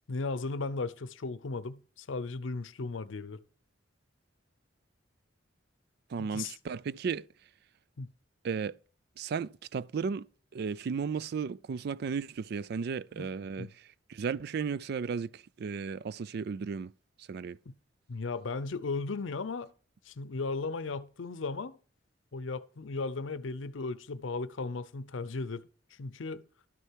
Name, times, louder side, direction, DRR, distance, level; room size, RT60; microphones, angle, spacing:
voice 1, 0.1-3.4 6.2-6.5 8.0-8.1 13.2-13.3 13.6-13.7 17.7-17.8 18.1-19.7 20.1-21.8 22.3-25.6 26.0-26.4, left 3 dB, 85° left, 0.6 m, -36 dB
voice 2, 6.1-7.3 8.4-8.8 9.2-10.3 10.5-16.9 17.3-17.6, right 5 dB, 55° right, 0.3 m, -35 dB
12.0 x 6.6 x 4.5 m
head